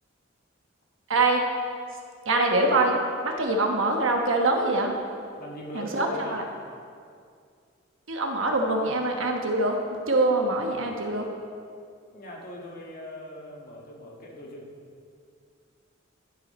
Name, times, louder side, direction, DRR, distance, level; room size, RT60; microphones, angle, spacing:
voice 1, 1.1-1.4 2.2-4.9 5.7-6.4 8.1-11.3, right 2 dB, 70° right, 2 dB, 1.2 m, -24 dB
voice 2, 5.4-6.4 12.1-14.7, equal, 45° left, -1 dB, 1.6 m, -40 dB
14.5 x 5.8 x 4.2 m, 2.3 s
head